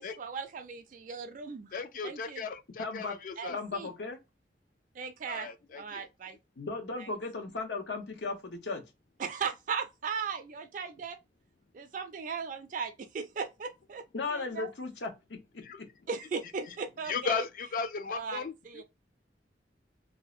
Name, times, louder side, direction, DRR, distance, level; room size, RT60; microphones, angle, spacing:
voice 1, 0.0-1.7 2.0-2.4 3.4-3.9 5.0-5.5 5.7-6.4 7.0-7.1 9.2-11.2 11.7-14.0 14.3-14.7 16.1-17.4 18.1-18.4 18.7-18.8, right 5 dB, 50° right, 0.4 m, -37 dB
voice 2, 1.7-3.6 5.3-6.1 15.6-15.8 16.6-16.8 17.1-18.8, left 5 dB, 50° left, 0.3 m, -36 dB
voice 3, 2.8-3.2 3.5-4.2 6.6-8.8 14.1-15.9, left 3 dB, 90° left, 0.7 m, -36 dB
2.7 x 2.0 x 2.3 m
head